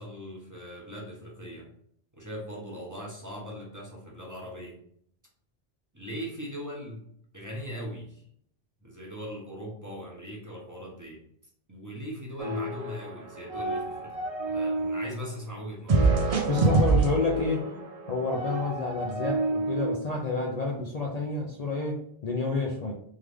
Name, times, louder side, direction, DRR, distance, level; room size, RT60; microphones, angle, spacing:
voice 1, 0.0-1.7 2.1-4.8 5.9-7.1 7.3-8.2 8.8-11.2 11.7-14.2 14.5-16.0, equal, 20° right, -4 dB, 1.0 m, -40 dB
sound 1, 12.4-13.1 13.4-15.1 15.9-20.0, right 3 dB, 40° right, 0.6 m, -27 dB
voice 2, 16.5-17.7 18.1-22.9, left 3 dB, 45° left, -1 dB, 0.6 m, -29 dB
3.7 x 3.2 x 3.3 m, 0.67 s
omnidirectional pair, 1.0 m